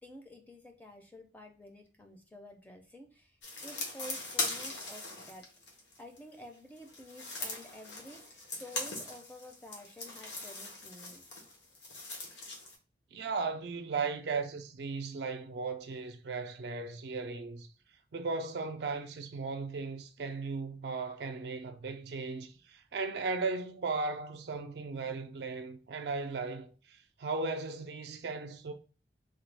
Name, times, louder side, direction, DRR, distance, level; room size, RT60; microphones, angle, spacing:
voice 1, 0.0-3.4 3.6-5.5 6.0-11.2, left 1 dB, 10° left, 0.4 m, -50 dB
sound 1, 3.4-6.2 6.8-12.7, left 2 dB, 85° left, 0.9 m, -40 dB
voice 2, 13.1-17.7 18.1-28.7, right 4 dB, 70° right, 0.4 m, -36 dB
3.3 x 2.2 x 3.2 m
head